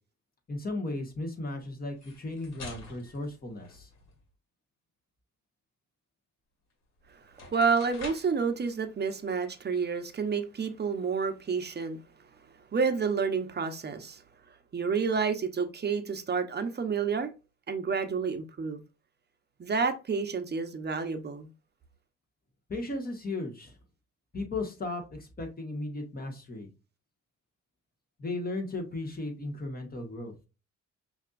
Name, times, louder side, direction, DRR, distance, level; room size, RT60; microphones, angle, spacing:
voice 1, 0.5-3.9 22.7-23.8 24.3-26.7 28.2-30.3, left 2 dB, 30° left, 1.6 m, -36 dB
sound 1, 1.9-4.3 6.7-6.8 7.2-8.4, left 3 dB, 65° left, 2.1 m, -47 dB
voice 2, 7.5-12.0 12.7-14.2 14.7-17.3 17.7-18.8 19.6-21.5, right 5 dB, 35° right, 0.9 m, -29 dB
5.6 x 2.9 x 2.5 m
cardioid pair, 90°, 30 cm